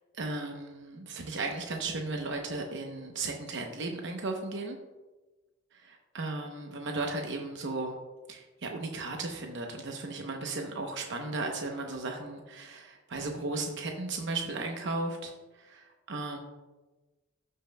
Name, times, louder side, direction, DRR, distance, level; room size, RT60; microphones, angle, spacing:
voice 1, 0.1-4.8 5.7-8.0 8.3-16.4, right 3 dB, 65° right, 2 dB, 0.8 m, -35 dB
15.5 x 5.5 x 2.2 m, 1.2 s
head